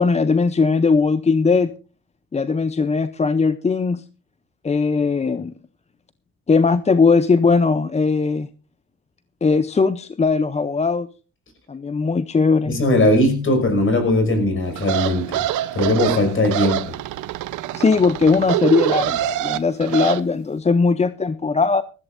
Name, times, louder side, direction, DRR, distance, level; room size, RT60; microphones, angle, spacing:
voice 1, 0.0-1.7 2.3-4.0 4.6-5.5 6.5-8.5 9.4-11.1 11.7-12.8 17.7-21.8, left 4 dB, 20° left, 13 dB, 0.6 m, -19 dB
voice 2, 12.7-15.4 15.7-16.9, left 1 dB, 45° left, 7 dB, 5.6 m, -19 dB
sound 1, 14.8-20.2, right 13 dB, 85° right, 0.8 m, -25 dB
19.5 x 14.5 x 2.6 m, 0.35 s
cardioid pair, 90°, 30 cm